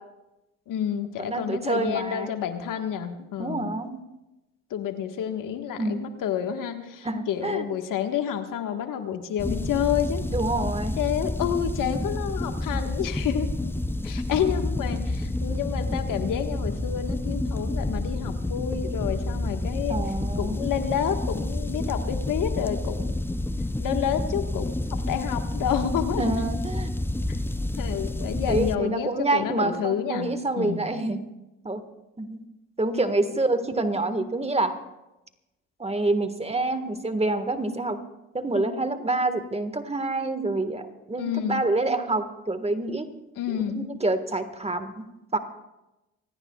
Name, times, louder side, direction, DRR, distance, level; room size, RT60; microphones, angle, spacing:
voice 1, 0.7-3.7 4.7-10.2 11.0-13.5 14.0-20.0 20.4-23.1 23.8-24.7 25.1-26.3 27.8-30.3 30.6-30.9 41.2-41.6 43.4-43.9, left 9 dB, 65° left, 6 dB, 1.6 m, -29 dB
voice 2, 1.2-2.3 3.4-4.0 5.8-6.1 7.0-7.7 10.3-11.0 19.9-20.6 26.2-26.9 28.5-31.2 31.6-31.8 32.2-32.4 32.8-34.8 35.8-38.0 38.3-43.1 43.7-44.9 45.3-45.4, right 2 dB, 20° right, 9 dB, 1.6 m, -27 dB
sound 1, 9.4-28.7, left 2 dB, 5° left, 0.7 m, -29 dB
25.5 x 17.5 x 2.4 m, 0.97 s
hypercardioid pair, 60°, 35 cm